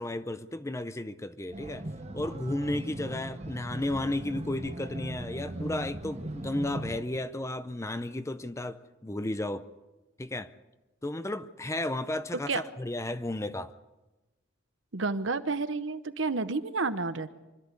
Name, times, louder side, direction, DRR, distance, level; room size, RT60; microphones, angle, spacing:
voice 1, 0.0-1.9 2.1-9.6 10.2-10.5 11.0-13.7, left 1 dB, 15° left, 0.6 m, -33 dB
sound 1, 1.5-7.0, right 1 dB, 30° right, 1.1 m, -39 dB
voice 2, 14.9-17.3, right 3 dB, 60° right, 0.9 m, -30 dB
25.0 x 13.5 x 8.3 m
head